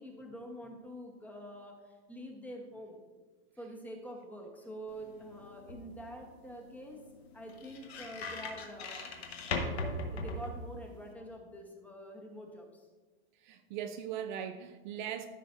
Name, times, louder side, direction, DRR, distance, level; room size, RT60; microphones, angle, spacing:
voice 1, 0.0-3.0 3.6-9.1 9.5-12.9, equal, 5° left, 1 dB, 1.1 m, -46 dB
sound 1, 4.9-11.1, left 2 dB, 80° left, 1.4 m, -40 dB
voice 2, 13.4-15.3, right 9 dB, 50° right, 7 dB, 0.6 m, -39 dB
14.0 x 5.8 x 2.6 m, 1.3 s
hypercardioid pair, 135°, 31 cm